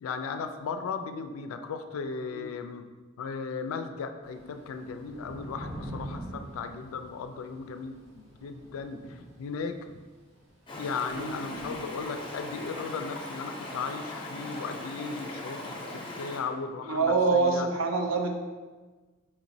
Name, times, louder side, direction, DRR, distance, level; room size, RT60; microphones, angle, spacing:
voice 1, 0.0-2.8 3.2-9.8 10.8-17.7, left 5 dB, 85° left, 7 dB, 0.3 m, -36 dB
Thunder / Rain, 4.2-12.6, equal, 60° right, 1.0 m, -45 dB
Stream, 10.7-16.4, left 1 dB, 25° left, 0.6 m, -39 dB
voice 2, 16.9-18.3, right 4 dB, 80° right, 4 dB, 0.5 m, -25 dB
4.5 x 2.9 x 2.6 m, 1.3 s
head